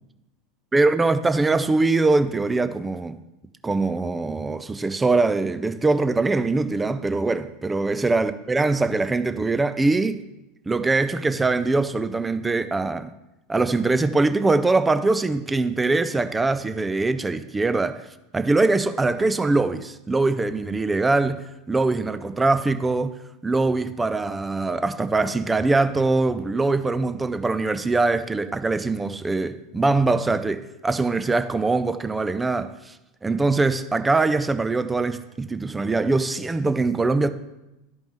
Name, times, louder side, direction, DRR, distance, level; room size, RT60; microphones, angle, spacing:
voice 1, 0.7-3.2 3.6-10.2 10.7-13.1 13.5-18.1 18.3-23.2 23.4-33.0 33.2-37.3, right 3 dB, 15° right, 0.4 m, -22 dB
12.5 x 5.2 x 3.0 m
figure-of-eight pair, 85°, 0 cm